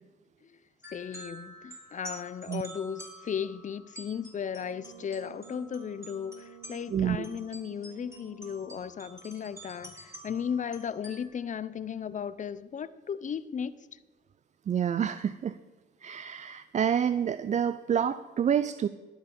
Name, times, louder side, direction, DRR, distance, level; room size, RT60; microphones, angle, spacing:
sound 1, 0.8-11.3, right 1 dB, 15° right, 3.3 m, -49 dB
voice 1, 0.9-14.0, left 7 dB, 40° left, 0.6 m, -36 dB
Brass instrument, 4.5-8.8, right 11 dB, 60° right, 1.2 m, -52 dB
voice 2, 6.9-7.2 14.7-15.6 16.0-18.9, right 8 dB, 35° right, 0.4 m, -28 dB
12.0 x 8.0 x 5.4 m
cardioid pair, 90°, 20 cm